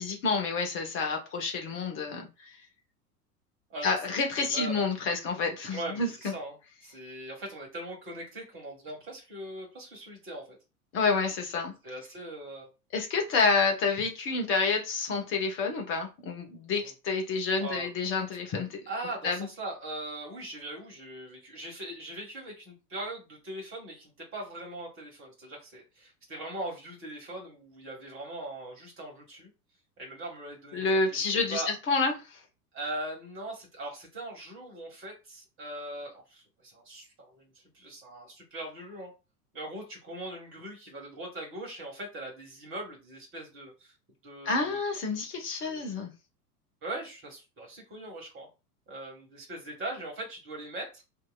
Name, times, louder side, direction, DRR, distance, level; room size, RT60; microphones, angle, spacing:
voice 1, 0.0-2.5 3.8-6.3 10.9-11.7 12.9-18.8 19.2-19.4 30.7-32.4 44.4-46.1, left 4 dB, 25° left, 0.8 m, -29 dB
voice 2, 3.7-4.9 5.7-6.5 6.8-10.6 11.8-12.7 17.6-17.9 18.9-29.5 30.0-31.7 32.7-39.1 39.5-43.9 44.2-44.8 45.6-45.8 46.8-48.5 48.9-51.0, right 1 dB, 25° right, 1.6 m, -40 dB
2.7 x 2.7 x 2.2 m
figure-of-eight pair, 85°, 47 cm